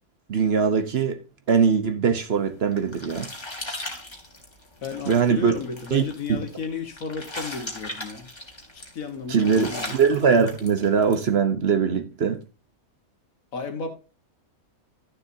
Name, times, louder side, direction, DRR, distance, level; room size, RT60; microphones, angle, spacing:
voice 1, 0.3-1.2 1.5-3.3 5.1-5.5 5.9-6.0 6.3-6.4 9.3-12.4, right 6 dB, 50° right, 1.0 m, -21 dB
sound 1, 2.4-11.3, left 1 dB, 20° left, 1.9 m, -38 dB
voice 2, 4.8-8.3 8.7-10.0 13.5-14.0, left 4 dB, 65° left, 1.8 m, -33 dB
12.0 x 6.8 x 2.7 m
omnidirectional pair, 1.6 m